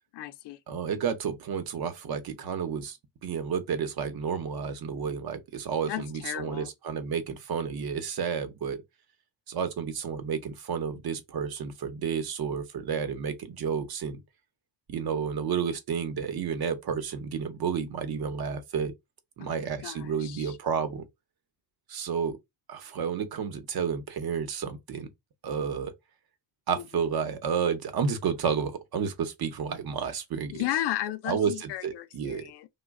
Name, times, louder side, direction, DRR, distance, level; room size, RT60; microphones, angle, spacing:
voice 1, 0.1-0.6 5.9-6.7 19.4-20.6 26.8-27.0 30.5-32.7, left 13 dB, 90° left, 0.5 m, -34 dB
voice 2, 0.7-8.8 9.5-14.2 14.9-18.9 19.4-21.1 21.9-22.4 22.7-25.1 25.4-25.9 26.7-30.6 31.3-32.4, right 6 dB, 65° right, 0.8 m, -31 dB
3.0 x 2.2 x 3.4 m
cardioid pair, 125°, 39 cm